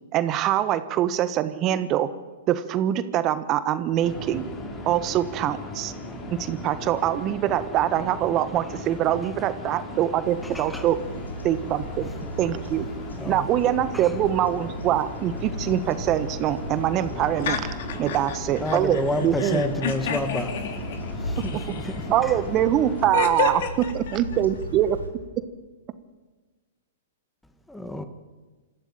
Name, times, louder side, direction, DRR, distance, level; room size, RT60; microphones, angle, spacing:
voice 1, 0.1-2.1 2.5-4.5 4.8-5.9 6.3-11.0 11.4-12.9 13.3-17.6 18.0-19.6 22.1-23.6 23.9-25.0, right 11 dB, 35° right, 12 dB, 1.2 m, -24 dB
sound 1, 4.0-23.1, left 1 dB, 25° left, 4.7 m, -37 dB
sound 2, 10.2-25.1, left 1 dB, 90° left, 3.3 m, -37 dB
voice 2, 10.4-10.8 13.2-13.5 13.9-14.1 18.1-18.2 18.6-20.5 21.2-21.6 21.8-22.3 27.7-28.0, left 1 dB, 5° left, 8 dB, 1.6 m, -29 dB
voice 3, 17.4-18.4 18.6-19.0 19.4-22.1 22.6-22.7 23.1-24.2, left 7 dB, 60° left, 6 dB, 3.3 m, -31 dB
27.0 x 14.0 x 8.8 m, 1.3 s
hypercardioid pair, 110°, 0 cm